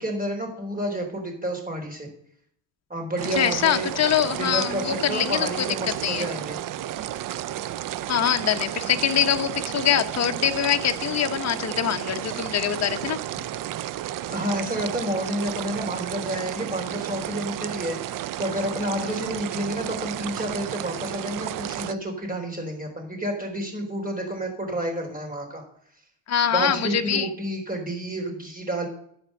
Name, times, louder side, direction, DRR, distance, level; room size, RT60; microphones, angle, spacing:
voice 1, 0.0-2.1 2.9-3.9 4.4-6.6 13.3-13.4 14.3-25.6 26.5-28.9, right 1 dB, 15° right, 2 dB, 3.8 m, -30 dB
sound 1, 3.2-21.9, right 12 dB, 45° right, 0.5 m, -32 dB
voice 2, 3.3-5.7 6.0-6.3 8.1-13.2 26.3-27.3, left 9 dB, 30° left, 7 dB, 1.0 m, -24 dB
11.0 x 4.5 x 7.7 m, 0.65 s
supercardioid pair, 90°, 49 cm